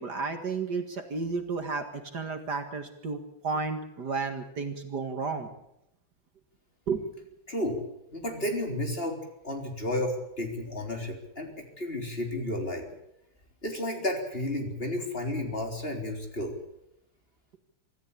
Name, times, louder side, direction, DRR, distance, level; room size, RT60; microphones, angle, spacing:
voice 1, 0.0-5.5 6.9-7.1, right 4 dB, 50° right, 7 dB, 2.4 m, -32 dB
voice 2, 7.5-7.8 8.1-9.2 9.4-12.8 13.6-16.5, left 1 dB, 25° left, 3 dB, 4.0 m, -32 dB
25.5 x 14.0 x 8.6 m, 0.81 s
omnidirectional pair, 2.3 m